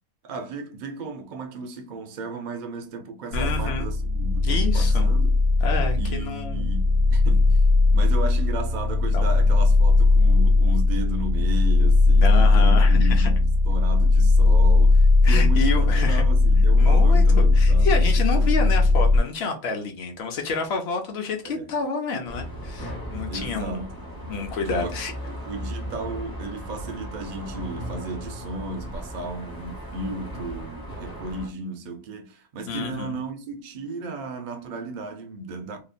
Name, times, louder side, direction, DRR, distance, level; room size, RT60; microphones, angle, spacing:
voice 1, 0.2-5.4 5.9-7.6 7.9-18.0 18.3-19.0 21.4-21.7 23.3-24.1 24.7-35.8, right 2 dB, 80° right, 0.4 m, -35 dB
sound 1, 3.3-19.2, left 3 dB, 75° left, 1.0 m, -18 dB
voice 2, 3.3-3.9 4.4-5.1 5.6-6.7 9.1-9.3 12.2-13.3 15.2-16.2 16.8-23.9 24.3-25.1 32.7-33.2, left 4 dB, 60° left, 0.7 m, -29 dB
sound 2, 22.3-31.5, equal, 25° left, 0.5 m, -36 dB
2.9 x 2.1 x 2.4 m
omnidirectional pair, 1.4 m